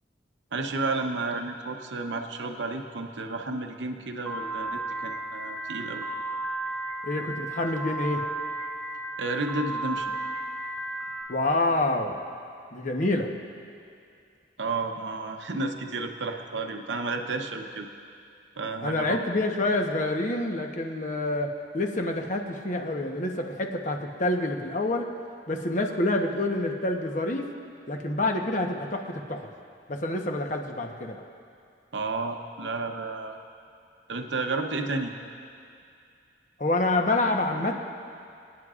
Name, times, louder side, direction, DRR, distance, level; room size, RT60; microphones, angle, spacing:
voice 1, 0.5-6.1 9.2-10.1 14.6-17.9 18.6-19.2 31.9-33.4 34.1-35.1, right 3 dB, 80° right, 4 dB, 0.8 m, -31 dB
Piano, 4.3-11.2, right 2 dB, 10° left, 2.8 m, -34 dB
voice 2, 7.0-8.2 11.3-12.1 12.7-13.3 18.8-25.1 25.5-27.5 27.9-29.5 29.9-31.2 36.6-37.8, left 2 dB, 45° left, 3 dB, 1.0 m, -27 dB
28.5 x 9.6 x 2.5 m, 2.4 s
head